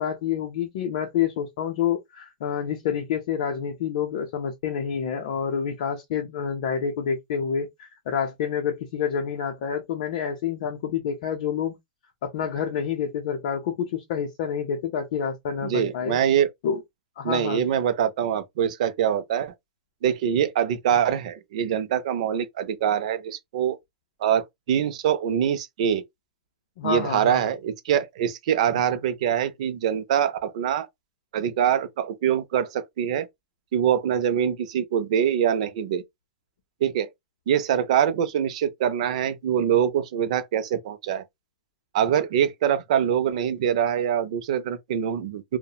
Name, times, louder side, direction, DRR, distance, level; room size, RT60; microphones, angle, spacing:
voice 1, 0.0-11.8 12.2-16.2 16.6-16.8 17.2-17.7 26.8-27.4, left 7 dB, 45° left, 0.5 m, -28 dB
voice 2, 15.6-16.5 17.2-19.5 20.0-23.8 24.2-26.0 26.8-30.9 31.3-33.3 33.7-36.0 36.8-37.1 37.5-41.2 41.9-45.6, right 9 dB, 50° right, 0.4 m, -24 dB
2.8 x 2.0 x 2.3 m
supercardioid pair, 170°, 5 cm